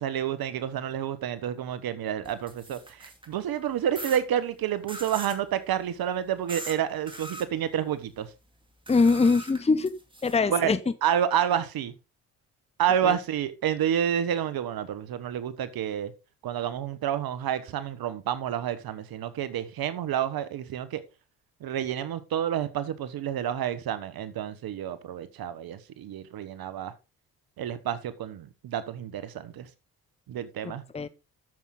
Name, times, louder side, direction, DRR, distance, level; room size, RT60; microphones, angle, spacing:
voice 1, 0.0-8.3 10.5-10.7 11.0-11.9 12.8-16.1 16.4-21.0 21.6-26.9 27.6-29.7 30.3-30.8, right 9 dB, 65° right, 1.2 m, -29 dB
sound 1, 2.2-3.3 3.9-4.2 4.9-5.4 6.5-6.8 7.1-7.5 8.9-10.4, right 1 dB, 10° right, 2.5 m, -41 dB
voice 2, 8.9-9.9 10.2-10.8 13.0-13.2 30.6-31.1, left 4 dB, 15° left, 0.8 m, -23 dB
9.2 x 7.3 x 3.8 m
supercardioid pair, 60°, 39 cm